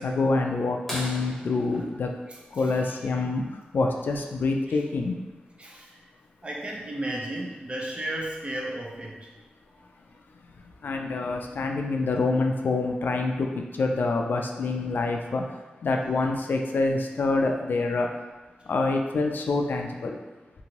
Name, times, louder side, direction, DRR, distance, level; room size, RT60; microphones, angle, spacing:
voice 1, 0.0-2.1 2.5-3.4 3.7-5.1 10.8-15.4 15.8-18.1 18.7-20.2, left 3 dB, 70° left, 3 dB, 0.3 m, -26 dB
sound 1, 0.9-3.3 5.3-5.4 7.6-7.7 9.4-9.7 10.5-10.6, equal, 5° left, 1.1 m, -39 dB
voice 2, 5.6-6.0 6.4-9.2, right 1 dB, 35° right, -2 dB, 0.6 m, -33 dB
2.8 x 2.6 x 2.8 m, 1.2 s
wide cardioid pair, 80°, 3 cm